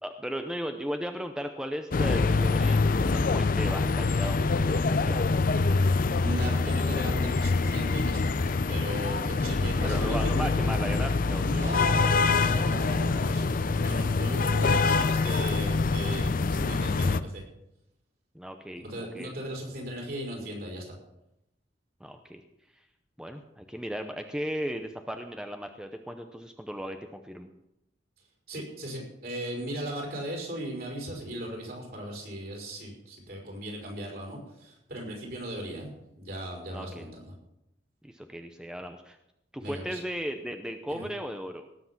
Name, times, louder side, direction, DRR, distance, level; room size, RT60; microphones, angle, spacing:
voice 1, 0.0-5.4 9.5-11.6 18.3-19.3 22.0-22.4 23.2-27.5 36.7-37.1 38.0-39.2 39.5-41.6, equal, 5° right, 6 dB, 0.7 m, -36 dB
sound 1, 1.9-17.2, left 3 dB, 50° left, 0.5 m, -25 dB
voice 2, 6.2-10.2 11.4-17.4 18.8-21.0 28.5-35.9 36.2-37.3 39.6-40.0 40.9-41.0, right 1 dB, 55° right, -1 dB, 5.2 m, -37 dB
18.5 x 7.8 x 5.9 m, 0.85 s
head